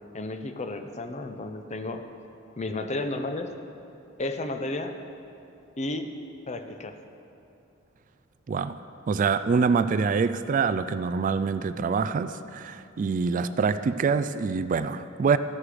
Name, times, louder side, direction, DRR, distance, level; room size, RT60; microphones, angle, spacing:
voice 1, 0.1-2.1 2.6-3.5 4.2-4.9 5.8-6.1 6.5-7.0, left 2 dB, 35° left, 7 dB, 0.7 m, -32 dB
voice 2, 8.5-15.4, right 5 dB, 40° right, 12 dB, 0.3 m, -25 dB
13.0 x 11.0 x 5.0 m, 2.7 s
head